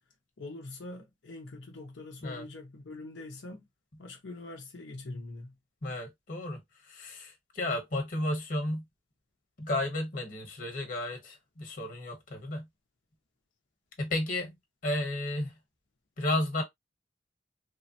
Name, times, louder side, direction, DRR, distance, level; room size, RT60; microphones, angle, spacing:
voice 1, 0.4-3.6 4.0-5.5, left 2 dB, 85° left, 0.7 m, -43 dB
voice 2, 5.8-8.8 9.6-12.6 14.0-14.5 14.8-15.5 16.2-16.6, left 1 dB, 50° left, 1.2 m, -33 dB
3.3 x 2.1 x 2.7 m
head